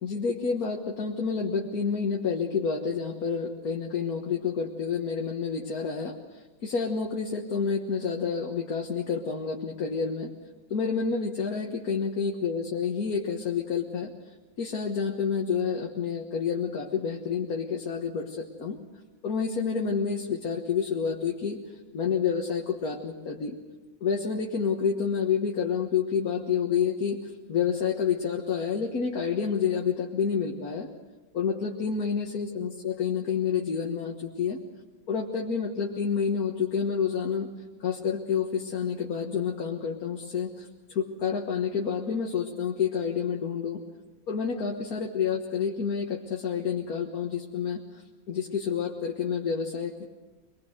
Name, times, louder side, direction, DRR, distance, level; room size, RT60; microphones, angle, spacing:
voice 1, 0.0-6.2 6.6-10.3 10.7-14.1 14.6-18.8 19.2-21.6 21.9-23.6 24.0-27.2 27.5-30.9 31.3-34.6 35.1-37.5 37.8-43.8 44.3-47.8 48.3-50.1, left 6 dB, 85° left, 1 dB, 1.9 m, -29 dB
24.5 x 21.0 x 6.5 m, 1.2 s
omnidirectional pair, 1.5 m